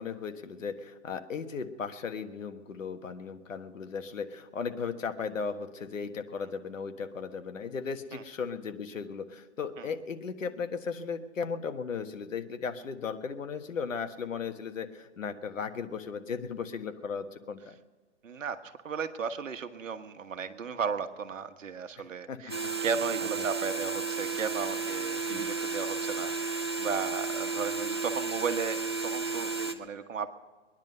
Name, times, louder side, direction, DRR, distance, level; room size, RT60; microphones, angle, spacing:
voice 1, 0.0-17.7 22.3-22.5 23.4-23.5 25.3-25.5, left 5 dB, 85° left, 8 dB, 1.5 m, -36 dB
voice 2, 18.2-30.3, right 6 dB, 85° right, 9 dB, 1.4 m, -35 dB
sound 1, 22.5-29.7, right 4 dB, 25° right, 0.4 m, -33 dB
22.0 x 10.5 x 5.5 m, 1.4 s
hypercardioid pair, 165°, 38 cm